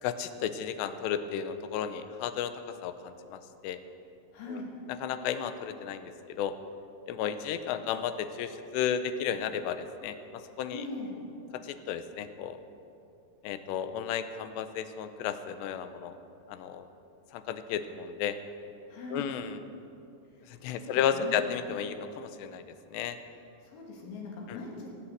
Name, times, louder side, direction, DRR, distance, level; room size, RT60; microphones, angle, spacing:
voice 1, 0.0-3.8 4.5-4.6 4.9-6.6 7.1-10.8 11.5-12.6 13.4-16.1 16.5-16.9 17.3-18.4 19.1-19.6 20.5-23.2 24.5-24.6, left 8 dB, 85° left, 10 dB, 2.9 m, -33 dB
voice 2, 4.3-4.7 10.7-11.2 18.9-19.3 20.4-21.4 23.6-24.9, left 3 dB, 65° left, -2 dB, 4.1 m, -41 dB
18.0 x 7.4 x 7.9 m, 2.6 s
omnidirectional pair, 4.9 m